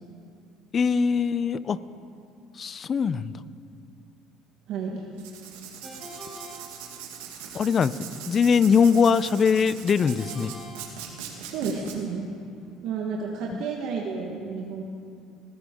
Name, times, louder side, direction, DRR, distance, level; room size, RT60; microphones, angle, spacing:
voice 1, 0.7-1.8 2.6-3.3 7.5-8.0 8.2-10.5, left 6 dB, 35° left, 17 dB, 0.5 m, -21 dB
voice 2, 4.7-5.1 11.4-12.3 12.8-14.8, right 5 dB, 65° right, -1 dB, 1.4 m, -31 dB
Writing, 5.1-12.0, right 8 dB, 90° right, 2.0 m, -41 dB
Ringtone, 5.8-7.5 10.0-11.7, equal, 10° left, 3.0 m, -45 dB
20.0 x 15.0 x 3.7 m, 2.5 s
supercardioid pair, 95°, 0 cm